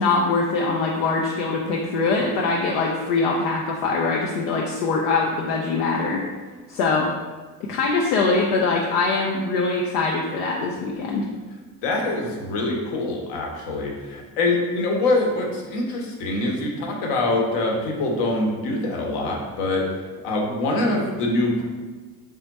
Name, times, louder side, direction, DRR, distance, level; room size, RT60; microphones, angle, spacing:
voice 1, 0.0-6.2 6.7-7.1 7.6-11.3, left 3 dB, 75° left, -1 dB, 0.6 m, -23 dB
voice 2, 11.8-19.8 20.2-21.6, left 2 dB, 60° left, 0 dB, 1.0 m, -24 dB
3.5 x 2.1 x 4.0 m, 1.3 s
hypercardioid pair, 55°, 46 cm